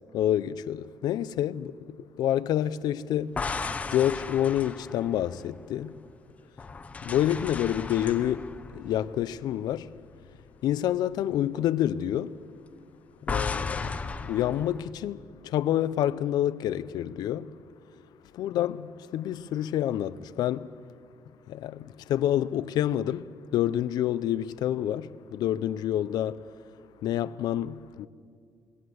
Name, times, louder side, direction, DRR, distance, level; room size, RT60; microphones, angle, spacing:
voice 1, 0.1-3.4 3.9-6.0 7.0-9.9 10.6-12.4 13.2-17.6 18.3-20.8 21.5-26.4 27.0-28.1, left 11 dB, 85° left, 0.5 m, -28 dB
sound 1, 3.2-6.1 6.6-10.0 10.3-10.5 13.3-14.9, left 4 dB, 20° left, 0.6 m, -35 dB
20.5 x 17.5 x 7.9 m
cardioid pair, 180°, 7 cm